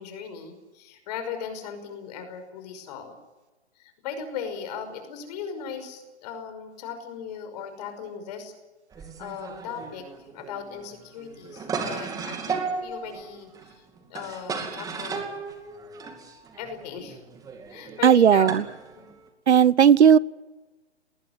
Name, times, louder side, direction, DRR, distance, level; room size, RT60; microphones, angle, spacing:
voice 1, 0.0-3.1 3.8-8.5 9.0-10.1 10.3-13.8 14.1-15.3 16.6-17.2 17.7-18.6, left 7 dB, 35° left, 8 dB, 5.6 m, -37 dB
sound 1, 8.9-19.3, right 5 dB, 10° right, 2.4 m, -35 dB
voice 2, 18.0-18.6 19.5-20.2, right 8 dB, 75° right, 22 dB, 0.8 m, -15 dB
20.0 x 19.0 x 9.6 m, 1.2 s
hypercardioid pair, 145°, 34 cm